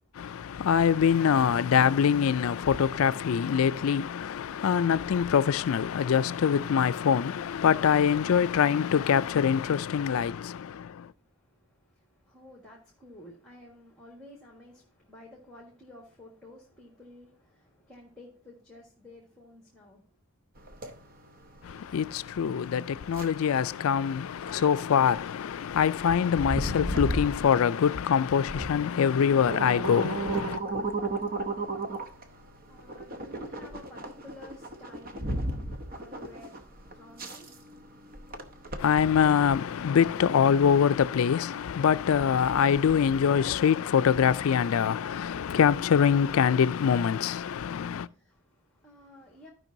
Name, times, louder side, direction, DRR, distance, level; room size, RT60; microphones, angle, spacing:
voice 1, 0.1-11.1 21.6-30.6 38.8-48.1, left 7 dB, 70° left, 0.4 m, -24 dB
voice 2, 10.7-20.0 30.7-38.9 48.1-49.5, left 1 dB, 5° left, 1.5 m, -53 dB
sound 1, 20.6-39.4, right 2 dB, 40° right, 0.8 m, -36 dB
15.0 x 5.3 x 2.7 m
head